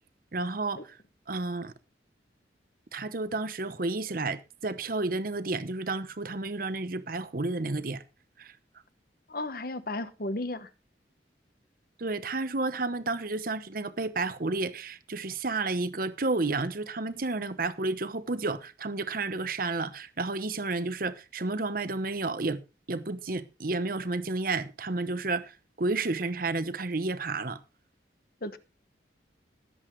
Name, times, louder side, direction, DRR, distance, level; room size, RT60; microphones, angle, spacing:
voice 1, 0.3-1.0 1.3-1.7 2.9-8.0 8.4-8.5 12.0-22.6 22.9-25.5 25.8-27.6, right 3 dB, 50° right, 1.0 m, -31 dB
voice 2, 9.3-10.7 28.4-28.6, left 2 dB, 55° left, 1.1 m, -34 dB
21.5 x 8.2 x 3.2 m
head